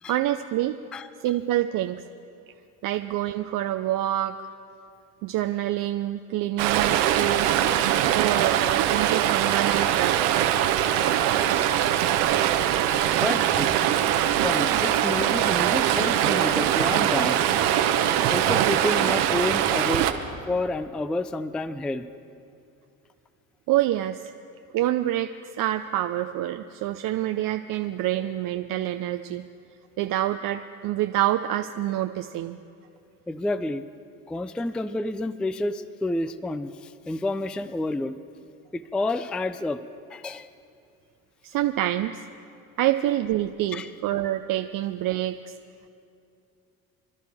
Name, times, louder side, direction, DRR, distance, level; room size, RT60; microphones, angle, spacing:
voice 1, 0.1-0.8 1.2-2.0 2.8-4.4 5.2-7.5 8.1-10.4 23.7-24.2 24.7-25.3 25.6-29.5 30.0-32.6 41.4-42.3 42.8-45.5, right 13 dB, 50° right, 8 dB, 0.6 m, -27 dB
Stream, 6.6-20.1, right 11 dB, 70° right, 1.0 m, -22 dB
voice 2, 12.9-13.8 14.4-17.4 18.0-20.1 20.5-22.1 33.3-33.8 34.3-38.2 38.7-39.8 40.1-40.5 43.7-43.9, left 2 dB, ahead, 13 dB, 0.3 m, -29 dB
25.5 x 12.0 x 3.5 m, 2.6 s
hypercardioid pair, 65°, 42 cm